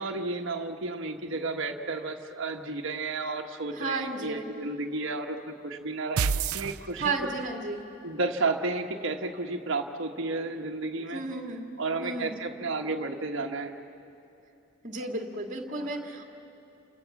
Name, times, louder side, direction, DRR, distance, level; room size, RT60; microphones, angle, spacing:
voice 1, 0.0-5.4 5.6-7.3 8.0-11.2 11.8-13.8 15.7-15.9, right 3 dB, 55° right, 2 dB, 1.4 m, -32 dB
voice 2, 3.8-4.5 7.0-7.8 11.1-11.7 12.0-12.4 14.8-16.3, right 3 dB, 35° right, 2 dB, 2.1 m, -33 dB
sound 1, 6.2-7.4, right 6 dB, 85° right, 0.6 m, -28 dB
29.5 x 26.5 x 7.2 m, 2.8 s
head